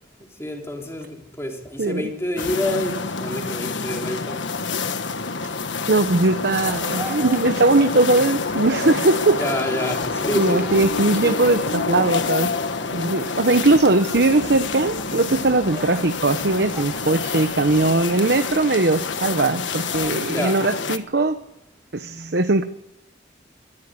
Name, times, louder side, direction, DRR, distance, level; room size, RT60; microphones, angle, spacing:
voice 1, 0.4-4.4 9.4-10.7 20.3-20.6, left 1 dB, 15° left, 3.8 m, -27 dB
voice 2, 1.8-2.1 5.9-9.4 10.3-12.5 12.9-21.4 21.9-22.6, right 2 dB, 60° right, 1.0 m, -20 dB
sound 1, 2.4-21.0, left 4 dB, 80° left, 1.4 m, -27 dB
sound 2, 6.6-20.1, right 1 dB, 10° right, 3.0 m, -41 dB
24.5 x 14.0 x 9.6 m
head